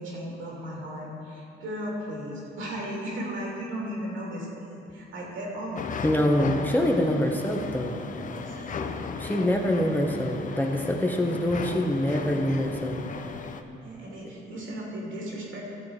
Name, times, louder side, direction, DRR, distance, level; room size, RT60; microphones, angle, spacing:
voice 1, 0.0-6.0 8.3-9.1 13.8-15.6, equal, 80° right, -3 dB, 2.8 m, -36 dB
sound 1, 5.8-13.6, left 5 dB, 40° left, 0.6 m, -36 dB
voice 2, 6.0-8.0 9.2-13.0, left 1 dB, 10° left, 1 dB, 1.0 m, -25 dB
13.5 x 7.2 x 4.8 m, 2.7 s
cardioid pair, 90°, 20 cm